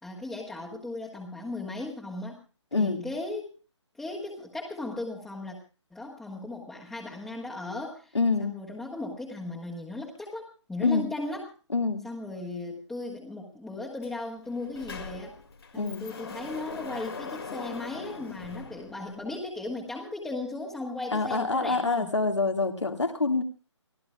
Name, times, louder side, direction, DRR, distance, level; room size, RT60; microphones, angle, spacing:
voice 1, 0.0-2.4 2.7-3.5 4.0-5.6 5.9-11.5 12.0-15.3 15.7-22.1, left 2 dB, 5° left, -3 dB, 1.6 m, -37 dB
voice 2, 2.7-3.1 8.1-8.6 10.8-11.1 11.7-12.1 15.7-16.0 21.1-23.4, left 3 dB, 70° left, 5 dB, 2.1 m, -26 dB
Sliding door, 14.0-14.1 14.4-19.4, left 4 dB, 55° left, 2.5 m, -41 dB
29.5 x 17.0 x 2.4 m, 0.36 s
figure-of-eight pair, 140°, 15 cm